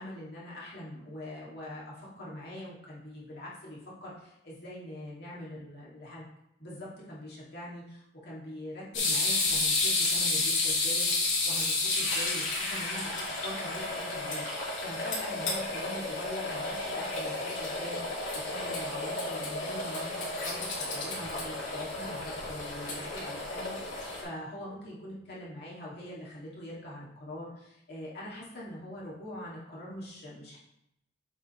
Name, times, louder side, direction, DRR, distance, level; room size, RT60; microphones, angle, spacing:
voice 1, 0.0-6.3 6.6-30.6, left 1 dB, 60° left, -6 dB, 2.0 m, -43 dB
sound 1, 8.9-24.2, left 2 dB, 90° left, 2.4 m, -31 dB
7.5 x 4.1 x 4.2 m, 0.81 s
head